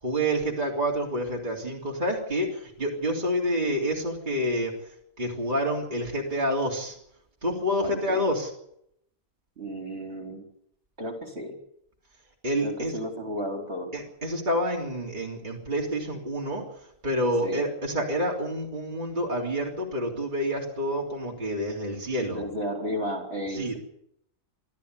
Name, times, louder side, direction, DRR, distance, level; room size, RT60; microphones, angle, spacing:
voice 1, 0.0-7.0 7.4-8.5 12.4-12.9 13.9-22.4 23.5-23.7, equal, 35° right, -2 dB, 3.6 m, -28 dB
voice 2, 7.8-8.2 9.6-10.4 11.0-11.5 12.6-13.9 17.4-17.7 22.2-23.8, equal, 50° right, 3 dB, 4.3 m, -33 dB
27.5 x 13.0 x 8.3 m, 0.74 s
omnidirectional pair, 1.4 m